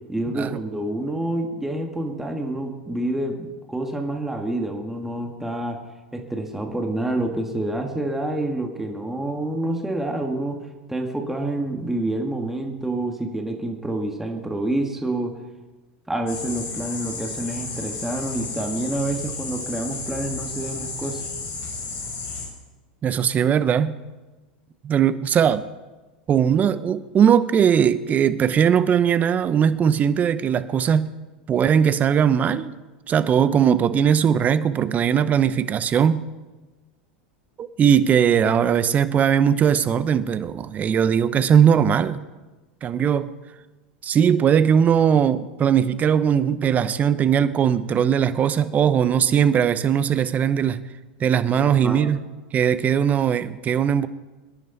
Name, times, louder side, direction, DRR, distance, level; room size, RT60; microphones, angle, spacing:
voice 1, 0.1-5.8 6.1-10.6 10.9-15.4 16.1-21.2 51.5-52.1, right 1 dB, 5° right, 2 dB, 2.0 m, -28 dB
sound 1, 16.3-22.5, left 4 dB, 50° left, 6.6 m, -33 dB
voice 2, 23.0-23.9 24.8-25.6 26.3-31.1 31.5-32.7 33.1-36.3 37.6-42.2 42.8-43.3 44.0-50.8 51.2-52.2 52.5-54.1, right 8 dB, 30° right, 14 dB, 0.9 m, -19 dB
24.0 x 11.0 x 4.2 m, 1.2 s
hypercardioid pair, 90°, 5 cm